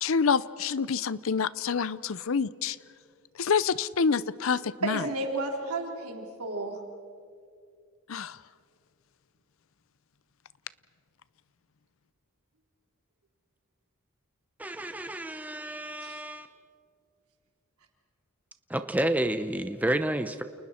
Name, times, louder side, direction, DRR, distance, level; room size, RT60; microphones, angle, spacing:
voice 1, 0.0-2.8 3.4-5.1 8.1-8.4, left 5 dB, 65° left, 18 dB, 0.6 m, -27 dB
voice 2, 4.8-6.8 16.0-16.2, right 2 dB, 90° right, 1 dB, 3.6 m, -32 dB
voice 3, 14.6-16.5 18.7-20.4, right 1 dB, 5° right, 9 dB, 0.7 m, -30 dB
29.5 x 29.0 x 4.4 m, 2.3 s
head